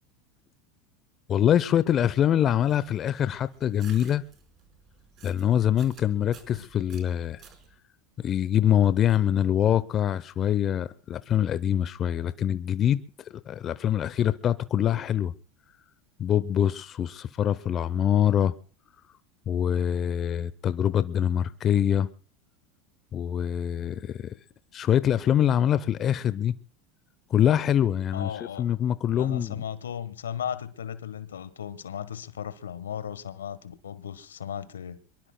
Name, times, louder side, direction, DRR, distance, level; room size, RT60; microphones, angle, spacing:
voice 1, 1.3-4.2 5.2-7.4 8.2-13.0 13.3-15.3 16.2-18.5 19.5-22.1 23.1-24.3 24.7-26.5 27.3-28.3 28.6-29.5, left 10 dB, 40° left, 0.7 m, -24 dB
sound 1, 2.4-7.8, right 6 dB, 45° right, 4.8 m, -53 dB
voice 2, 28.1-28.7 29.2-35.0, left 8 dB, 85° left, 1.3 m, -36 dB
24.5 x 22.5 x 2.3 m
hypercardioid pair, 85°, 0 cm